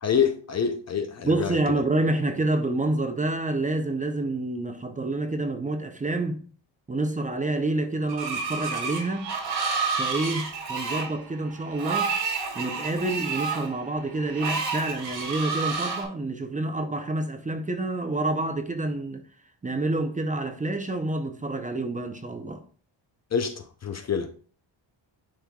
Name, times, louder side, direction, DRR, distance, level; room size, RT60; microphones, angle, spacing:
voice 1, 0.0-1.6 23.3-24.3, left 7 dB, 35° left, 0.6 m, -26 dB
voice 2, 1.2-6.4 6.9-9.3 10.0-12.1 12.5-19.2 19.6-22.6, right 2 dB, 15° right, 0.7 m, -28 dB
Screech, 8.1-16.0, right 5 dB, 65° right, 2.5 m, -30 dB
10.5 x 4.5 x 2.3 m
cardioid pair, 135°, 46 cm